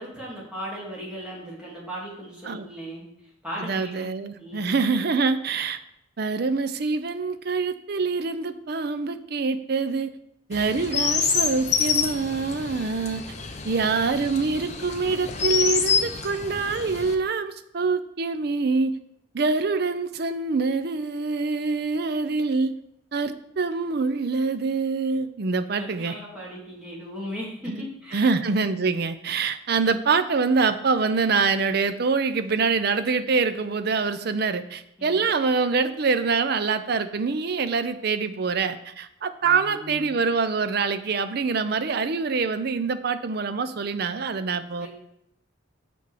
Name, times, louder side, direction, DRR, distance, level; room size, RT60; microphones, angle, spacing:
voice 1, 0.0-3.0 3.4-4.1 4.4-4.7 25.8-28.3 35.0-35.2 39.4-40.2 44.8-44.9, equal, 5° right, -7 dB, 2.5 m, -37 dB
voice 2, 3.6-5.8 6.2-10.1 10.5-13.2 13.6-18.9 19.3-22.7 23.1-26.1 27.7-44.9, right 4 dB, 50° right, 10 dB, 0.5 m, -25 dB
Chirp tweet, 10.5-17.1, left 6 dB, 35° left, 0.6 m, -27 dB
6.8 x 5.9 x 4.9 m, 0.79 s
head